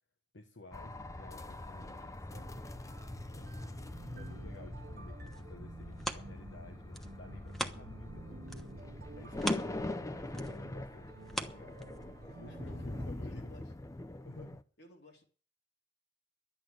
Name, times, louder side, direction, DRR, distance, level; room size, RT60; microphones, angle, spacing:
voice 1, 0.3-2.5 3.3-8.9 9.1-11.8 12.3-13.5 14.2-14.6, left 2 dB, 85° left, 1.2 m, -54 dB
sound 1, 0.7-14.6, left 1 dB, 20° left, 0.7 m, -43 dB
sound 2, 2.3-13.0, right 2 dB, 55° right, 1.1 m, -51 dB
sound 3, 5.0-8.2 8.5-12.3 12.8-12.9, right 1 dB, ahead, 1.1 m, -42 dB
voice 2, 12.2-12.9 13.2-13.7 14.8-15.2, equal, 65° left, 3.5 m, -58 dB
11.5 x 8.7 x 9.3 m
head